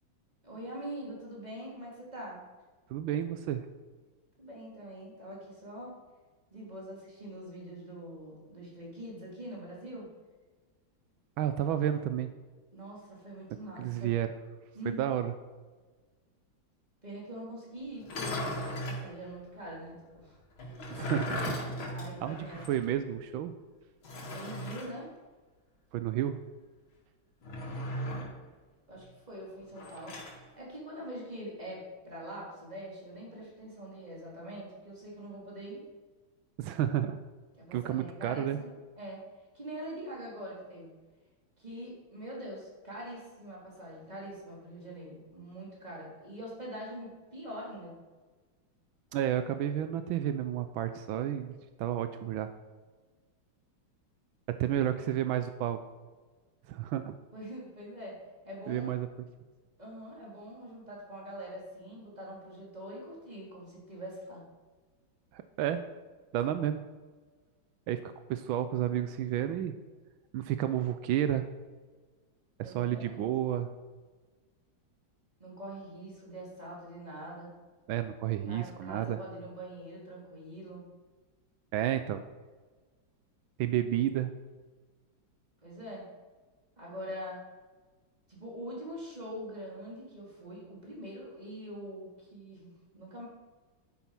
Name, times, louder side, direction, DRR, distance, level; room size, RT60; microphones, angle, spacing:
voice 1, 0.4-2.4 4.4-5.9 6.5-10.1 12.7-14.2 14.7-15.2 17.0-20.4 21.9-22.7 24.3-25.1 28.9-30.2 30.6-35.8 37.6-39.2 39.5-40.9 41.6-47.9 57.3-58.2 58.4-58.9 59.8-64.4 72.6-73.3 75.4-77.5 78.5-80.9 85.6-86.0 86.8-87.4 88.3-93.3, right 1 dB, 20° right, -4 dB, 3.8 m, -44 dB
voice 2, 2.9-3.7 11.4-12.3 13.8-14.3 14.9-15.3 20.9-21.6 22.2-23.5 25.9-26.4 36.6-37.2 37.7-38.6 49.1-52.5 54.5-55.8 56.7-57.1 58.7-59.1 65.3-65.8 66.3-66.8 67.9-69.7 70.3-71.5 72.6-73.7 77.9-79.2 81.7-82.2 83.6-84.3, right 11 dB, 80° right, 10 dB, 1.5 m, -31 dB
sound 1, 18.0-19.1 20.6-22.9 23.1-23.2 24.0-24.9 27.4-28.4 29.8-30.4, equal, 90° left, 3.0 m, -37 dB
11.5 x 9.6 x 5.9 m, 1.4 s
omnidirectional pair, 2.2 m